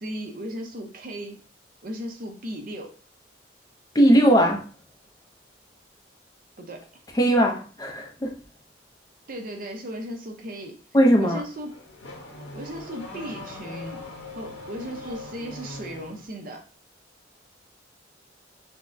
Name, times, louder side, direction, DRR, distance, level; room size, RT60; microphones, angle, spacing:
voice 1, 0.0-1.4 1.8-2.9 6.6-7.0 9.3-10.8 11.2-11.8 12.5-14.0 14.4-16.7, equal, 45° right, 4 dB, 0.6 m, -36 dB
voice 2, 3.9-4.6 7.2-8.3 10.9-11.4, equal, 20° left, 2 dB, 0.5 m, -19 dB
Car / Accelerating revving vroom, 11.4-16.3, left 2 dB, 75° left, 1.1 m, -41 dB
5.9 x 2.1 x 2.5 m, 0.38 s
head